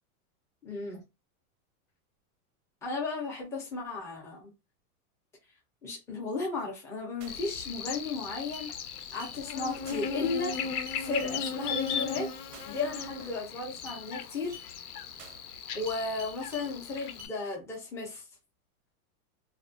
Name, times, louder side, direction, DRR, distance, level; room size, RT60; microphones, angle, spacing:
voice 1, 0.6-1.0 2.8-4.5 5.8-8.7 9.1-12.3 12.6-14.6 15.7-18.2, left 3 dB, 5° left, 0.4 m, -35 dB
sound 1, 7.2-7.5 7.9-8.2 8.5-8.7 9.2-9.4 9.9-10.2 10.5-11.4 11.9-12.0 12.5-12.8 13.2-13.5 13.9-14.0 14.5-14.7 15.2-15.5 15.9-16.7 17.2-17.4, left 2 dB, 85° right, 0.7 m, -48 dB
Buzz, 7.3-17.3, left 6 dB, 90° left, 0.6 m, -37 dB
2.4 x 2.1 x 2.4 m
supercardioid pair, 145°, 44 cm